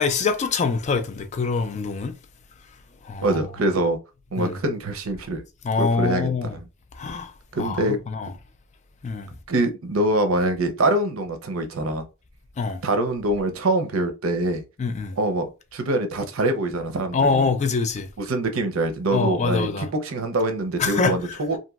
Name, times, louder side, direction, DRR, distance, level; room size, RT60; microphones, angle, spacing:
voice 1, 0.0-2.1 3.0-3.4 4.4-4.6 5.6-6.6 7.0-7.3 7.6-8.3 9.0-9.3 12.6-12.8 14.8-15.2 17.1-18.1 19.1-19.9 20.8-21.1, left 4 dB, 35° left, 0.3 m, -24 dB
voice 2, 3.2-4.0 4.3-5.4 5.8-6.6 7.5-8.0 9.5-12.0 12.8-14.6 15.2-17.5 18.2-21.6, right 1 dB, 75° right, 0.6 m, -24 dB
2.9 x 2.5 x 2.3 m
head